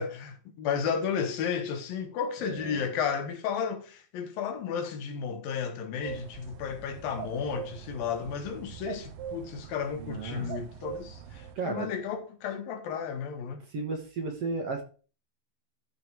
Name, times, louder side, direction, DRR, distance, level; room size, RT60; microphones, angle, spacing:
voice 1, 0.0-13.6, left 7 dB, 80° left, 3.2 m, -33 dB
voice 2, 2.4-2.8 10.0-10.5 11.6-11.9 13.7-14.8, right 4 dB, 55° right, 2.1 m, -34 dB
sound 1, 6.0-11.6, right 8 dB, 80° right, 2.6 m, -42 dB
13.5 x 5.3 x 4.7 m
omnidirectional pair, 4.1 m